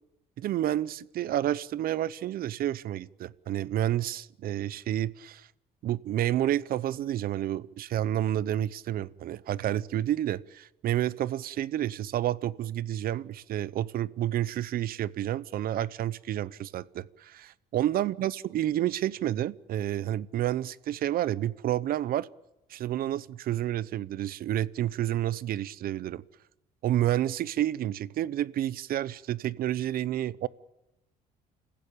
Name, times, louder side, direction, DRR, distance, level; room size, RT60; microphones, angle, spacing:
voice 1, 0.4-5.5 5.8-22.3 22.7-26.2 26.8-30.5, right 12 dB, 60° right, 0.8 m, -30 dB
29.0 x 15.5 x 8.8 m
cardioid pair, 110°, 17 cm